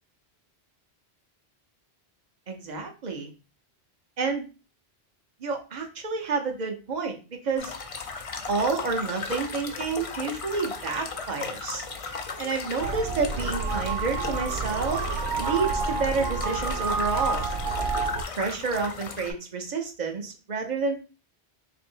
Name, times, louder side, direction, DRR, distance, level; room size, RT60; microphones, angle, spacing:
voice 1, 2.5-3.3 4.2-4.5 5.4-7.2 7.4-7.7 8.5-11.8 12.4-15.0 15.4-17.5 18.3-21.0, right 4 dB, 45° right, 4 dB, 0.8 m, -29 dB
sound 1, 7.6-19.3, left 4 dB, 50° left, 0.4 m, -36 dB
sound 2, 12.8-18.2, right 4 dB, 80° right, 0.8 m, -29 dB
3.1 x 2.6 x 4.4 m, 0.33 s
omnidirectional pair, 1.1 m